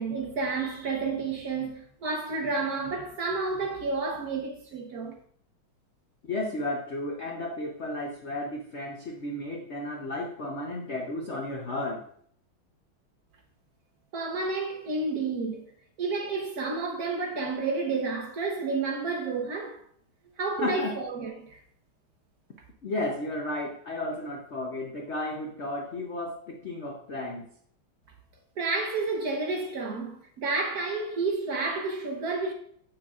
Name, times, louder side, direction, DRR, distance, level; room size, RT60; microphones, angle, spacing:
voice 1, 0.0-5.1 14.1-15.6 16.0-19.8 20.4-21.6 28.6-32.5, right 3 dB, 55° right, 1.2 m, -30 dB
voice 2, 6.3-12.0 20.6-21.0 22.8-27.5, left 2 dB, 65° left, 0.6 m, -33 dB
7.7 x 6.7 x 2.4 m
omnidirectional pair, 2.3 m